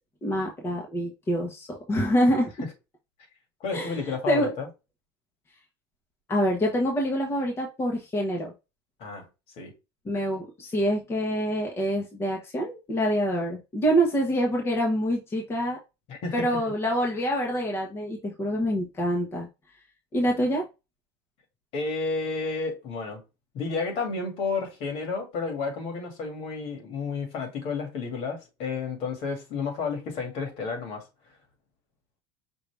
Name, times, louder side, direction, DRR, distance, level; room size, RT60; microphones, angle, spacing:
voice 1, 0.2-2.5 3.7-4.0 4.3-4.5 6.3-8.5 10.0-15.8 16.3-19.5 20.1-20.7, equal, 20° left, 1.2 m, -26 dB
voice 2, 3.6-4.7 9.0-9.3 9.6-9.7 16.1-16.6 21.7-23.2 23.5-31.0, left 4 dB, 55° left, 2.1 m, -31 dB
5.4 x 2.8 x 3.4 m
supercardioid pair, 135°, 12 cm